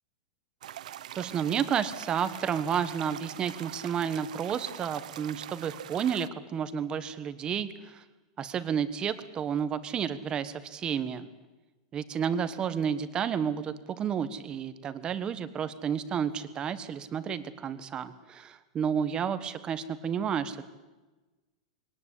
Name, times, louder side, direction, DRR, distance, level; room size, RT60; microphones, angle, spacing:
sound 1, 0.6-6.3, right 11 dB, 80° right, 0.7 m, -43 dB
voice 1, 1.2-8.0 8.4-11.3 11.9-20.6, right 8 dB, 20° right, 12 dB, 1.3 m, -31 dB
21.5 x 19.0 x 8.4 m, 1.2 s
supercardioid pair, 150°, 4 cm